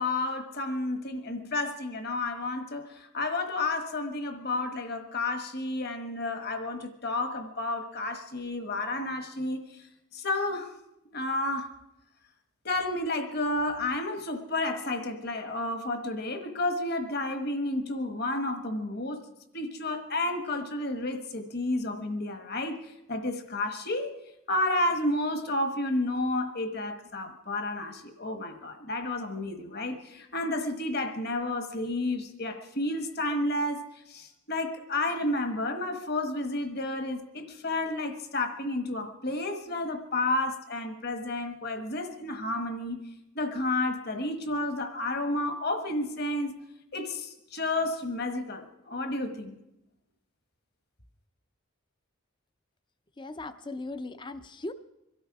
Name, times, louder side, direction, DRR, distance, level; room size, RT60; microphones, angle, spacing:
voice 1, 0.0-9.6 10.1-10.7 11.1-11.7 12.6-19.2 19.5-24.1 24.5-33.8 34.1-43.1 43.3-46.5 46.9-49.5, left 2 dB, 50° left, 7 dB, 1.3 m, -31 dB
voice 2, 53.2-54.7, left 2 dB, 20° left, 11 dB, 0.6 m, -38 dB
23.0 x 12.5 x 4.8 m, 0.90 s
head